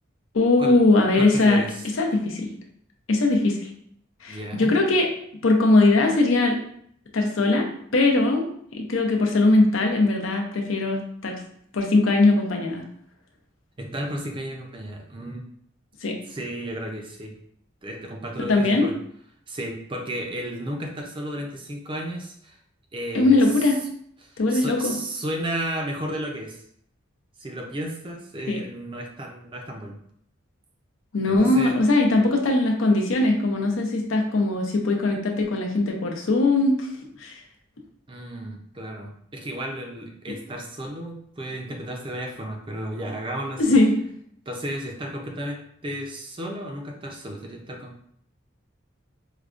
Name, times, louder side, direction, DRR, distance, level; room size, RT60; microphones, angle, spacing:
voice 1, 0.3-1.6 2.0-2.5 3.1-3.7 4.2-5.1 5.4-6.6 7.1-7.7 7.9-8.5 8.7-11.3 11.7-12.8 16.0-16.2 18.4-18.9 23.1-23.8 24.4-24.9 28.5-28.6 31.1-36.9 37.2-37.3 43.6-43.9, left 2 dB, 75° left, 2 dB, 0.6 m, -20 dB
voice 2, 1.2-1.9 4.3-4.8 13.8-15.4 16.3-17.4 17.8-18.9 19.5-22.6 22.9-23.7 24.2-26.6 27.4-30.0 31.3-31.8 38.1-43.6 44.5-47.9, right 1 dB, 25° right, 2 dB, 0.4 m, -33 dB
4.7 x 2.2 x 2.4 m, 0.66 s
head